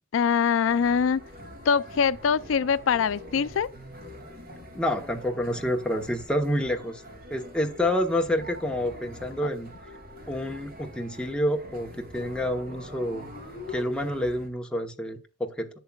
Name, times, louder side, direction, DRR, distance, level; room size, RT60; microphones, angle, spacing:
voice 1, 0.1-1.2 1.7-3.7, left 6 dB, 80° left, 0.4 m, -23 dB
sound 1, 0.6-14.5, left 1 dB, 50° right, 2.3 m, -44 dB
voice 2, 4.7-7.0 7.3-9.7 10.3-13.3 13.7-15.7, left 1 dB, 5° left, 0.9 m, -28 dB
11.0 x 7.2 x 2.3 m
head